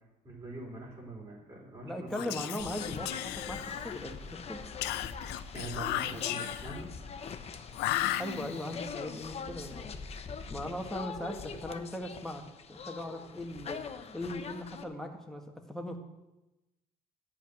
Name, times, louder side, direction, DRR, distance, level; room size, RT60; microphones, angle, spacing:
voice 1, 0.2-2.1 5.5-6.9, right 2 dB, 25° right, -5 dB, 3.1 m, -43 dB
voice 2, 1.8-4.6 8.2-9.9 10.5-12.4 12.7-13.8 14.1-16.0, left 1 dB, ahead, 2 dB, 1.6 m, -39 dB
Whispering, 2.1-4.1 4.8-6.8 7.7-8.8, left 14 dB, 90° left, 0.5 m, -35 dB
sound 1, 2.6-14.8, left 6 dB, 40° left, 0.9 m, -42 dB
11.5 x 5.9 x 9.0 m, 1.0 s
cardioid pair, 110°, 17 cm